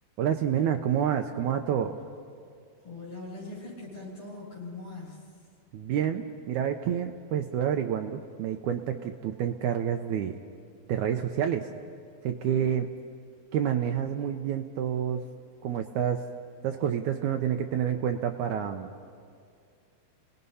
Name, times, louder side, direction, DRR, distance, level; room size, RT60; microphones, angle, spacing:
voice 1, 0.2-2.0 5.7-10.3 10.9-11.7 12.2-12.9 13.5-15.2 15.6-16.2 16.6-18.9, right 9 dB, 85° right, 5 dB, 1.7 m, -28 dB
voice 2, 2.8-5.2, left 2 dB, 30° left, -6 dB, 8.2 m, -41 dB
29.5 x 18.5 x 5.5 m, 2.3 s
omnidirectional pair, 4.3 m